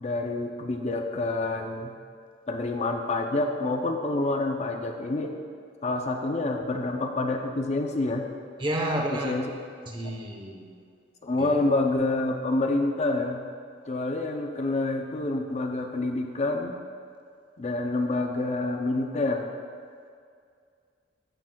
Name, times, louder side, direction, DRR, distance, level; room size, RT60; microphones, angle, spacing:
voice 1, 0.0-1.9 2.5-5.3 5.8-8.3 9.1-9.4 11.2-13.4 13.9-16.8 17.6-19.5, left 2 dB, 40° left, 3 dB, 0.5 m, -27 dB
voice 2, 8.6-9.3 9.9-10.8 11.3-11.6, right 1 dB, 30° right, 1 dB, 0.9 m, -30 dB
14.5 x 5.9 x 2.3 m, 2.2 s
head